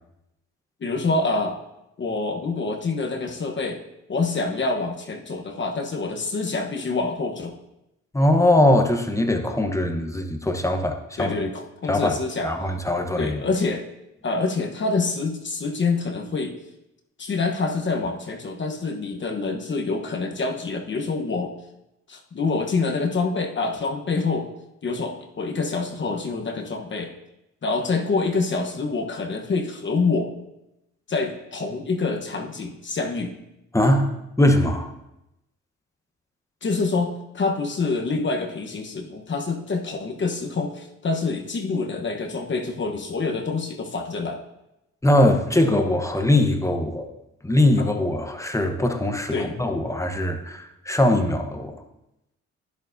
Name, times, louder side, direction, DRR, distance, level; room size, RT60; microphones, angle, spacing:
voice 1, 0.8-1.6 2.0-3.8 4.1-7.5 11.2-12.5 13.2-13.8 14.2-16.6 17.2-21.5 22.1-24.5 24.8-27.1 27.6-30.3 31.1-33.3 36.6-44.4 47.8-47.9 49.3-49.5, left 3 dB, 40° left, 3 dB, 1.1 m, -26 dB
voice 2, 8.1-11.3 11.9-12.2 12.4-13.4 33.7-34.1 34.4-34.9 45.0-47.1 47.4-51.8, left 1 dB, 10° left, 4 dB, 1.0 m, -21 dB
11.0 x 10.5 x 2.7 m, 0.89 s
cardioid pair, 90°, 30 cm